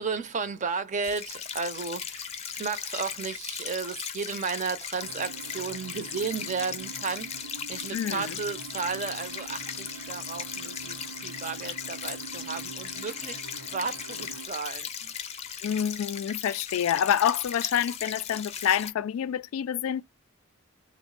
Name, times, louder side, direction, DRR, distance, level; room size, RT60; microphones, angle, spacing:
voice 1, 0.0-15.2, right 5 dB, 35° right, 0.5 m, -34 dB
sound 1, 1.0-18.9, left 7 dB, 30° left, 0.5 m, -38 dB
sound 2, 5.0-14.5, right 5 dB, 85° right, 0.6 m, -44 dB
voice 2, 7.9-8.4 15.6-20.0, left 9 dB, 90° left, 0.3 m, -27 dB
3.4 x 2.1 x 3.8 m
head